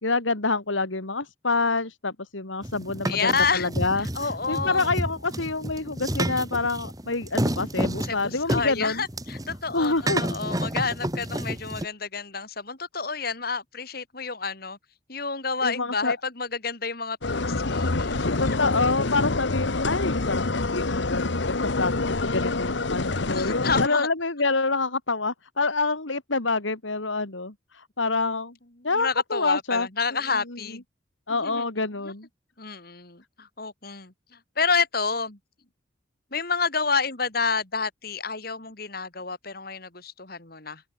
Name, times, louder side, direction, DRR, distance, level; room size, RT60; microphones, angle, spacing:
voice 1, 0.0-4.1 4.5-9.0 9.7-10.2 15.6-16.1 18.4-28.5 28.8-29.9 30.5-30.8 31.3-32.3, left 3 dB, 90° left, 2.8 m, -27 dB
sound 1, 2.6-11.9, right 1 dB, 20° right, 5.9 m, -30 dB
voice 2, 3.1-3.7 4.0-4.9 8.1-14.8 15.1-18.6 23.3-24.1 28.8-30.8 31.3-31.7 32.0-32.1 32.6-35.4 36.3-40.8, left 5 dB, 50° left, 3.2 m, -29 dB
sound 2, 17.2-23.9, left 3 dB, 70° left, 1.2 m, -26 dB
head